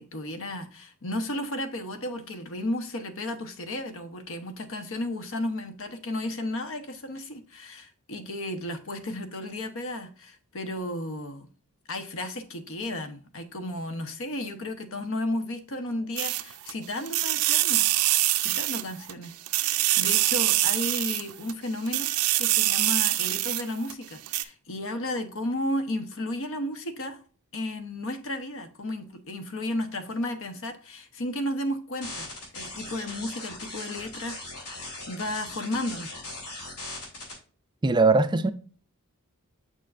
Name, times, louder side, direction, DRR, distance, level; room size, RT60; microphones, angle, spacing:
voice 1, 0.0-11.5 11.9-17.9 18.4-27.2 27.5-32.3 32.5-36.2, left 1 dB, 65° left, 1.0 m, -33 dB
sound 1, 16.2-16.7 17.1-19.1 19.5-21.5 21.9-23.9 24.3-24.4, right 16 dB, 85° right, 0.5 m, -24 dB
sound 2, 32.0-37.3, left 2 dB, 85° left, 3.4 m, -39 dB
voice 2, 37.8-38.5, right 3 dB, 20° right, 0.4 m, -20 dB
6.5 x 6.4 x 2.5 m
head